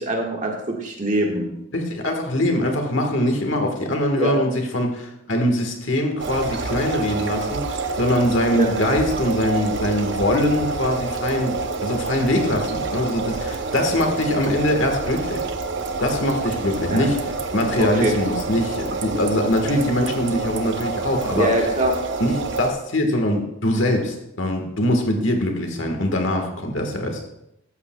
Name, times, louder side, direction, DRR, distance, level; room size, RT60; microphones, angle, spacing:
voice 1, 0.0-1.5 4.2-4.3 8.5-8.7 16.9-17.1 17.8-18.1 21.3-21.9, right 1 dB, 35° right, 0 dB, 1.5 m, -23 dB
voice 2, 1.7-15.5 16.0-17.2 17.5-21.5 22.2-27.2, left 1 dB, 65° left, 3 dB, 1.5 m, -22 dB
sound 1, 6.2-22.7, right 4 dB, 55° right, 0.7 m, -28 dB
13.0 x 8.2 x 2.3 m, 0.82 s
head